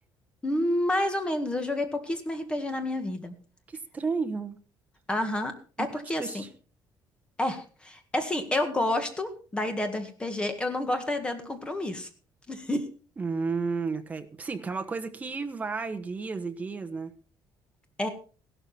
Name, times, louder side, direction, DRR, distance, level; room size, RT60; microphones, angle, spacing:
voice 1, 0.4-3.3 5.1-6.5 7.4-12.1 12.5-12.8 18.0-18.1, left 1 dB, 10° left, 1.8 m, -29 dB
voice 2, 3.9-4.6 5.8-5.9 6.2-6.5 13.2-17.1, right 4 dB, 20° right, 1.1 m, -32 dB
16.0 x 12.5 x 4.3 m
cardioid pair, 175°, 8 cm